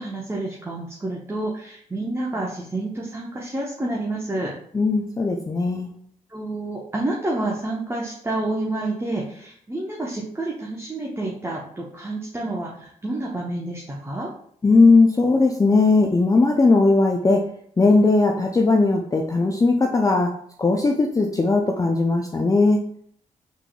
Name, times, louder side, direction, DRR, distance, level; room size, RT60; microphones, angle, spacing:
voice 1, 0.0-4.5 6.3-14.3, right 2 dB, 15° right, -2 dB, 0.7 m, -29 dB
voice 2, 4.7-5.9 14.6-17.5 17.8-20.3 20.6-22.8, left 3 dB, 20° left, 2 dB, 0.4 m, -18 dB
3.6 x 3.1 x 2.3 m, 0.63 s
hypercardioid pair, 45°, 17 cm